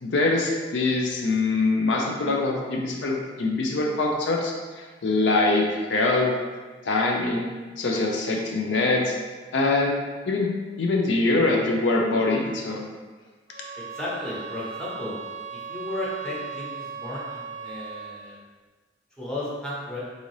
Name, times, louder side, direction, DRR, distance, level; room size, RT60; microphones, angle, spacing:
voice 1, 0.0-6.3 6.8-7.4 7.8-9.1 9.5-9.9 10.3-10.5 10.8-12.8, left 2 dB, 75° left, -1 dB, 0.5 m, -23 dB
sound 1, 13.5-18.3, right 6 dB, 45° right, 0.7 m, -37 dB
voice 2, 13.8-15.2 15.5-18.4 19.2-20.0, left 1 dB, 5° left, -8 dB, 0.9 m, -34 dB
3.8 x 2.8 x 3.1 m, 1.4 s
head